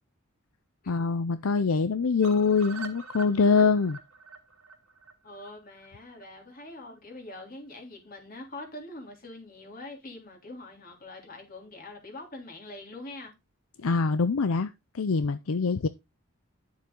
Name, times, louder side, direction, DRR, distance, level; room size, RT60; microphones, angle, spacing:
voice 1, 0.9-4.0 13.8-15.9, left 4 dB, 80° left, 0.6 m, -24 dB
sound 1, 2.2-6.2 6.6-6.7 7.0-7.1 7.3-7.4, right 4 dB, 80° right, 2.3 m, -45 dB
voice 2, 5.2-13.3, left 2 dB, 40° left, 3.3 m, -44 dB
10.5 x 7.2 x 3.8 m
head